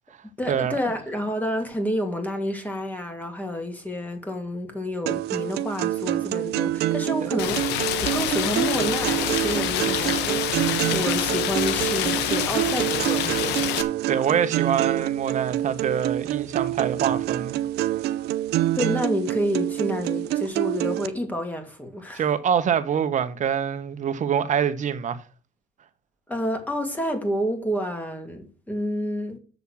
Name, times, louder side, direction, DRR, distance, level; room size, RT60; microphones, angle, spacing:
voice 1, 0.4-7.7 8.0-13.8 18.7-22.2 26.3-29.4, equal, 10° left, 2.5 m, -29 dB
sound 1, 5.1-21.1, right 14 dB, 75° right, 0.6 m, -26 dB
Rain, 7.4-13.8, left 11 dB, 90° left, 1.0 m, -27 dB
voice 2, 14.1-17.6 22.1-25.2, right 8 dB, 45° right, 1.2 m, -25 dB
7.1 x 6.8 x 6.5 m
cardioid pair, 110°, 17 cm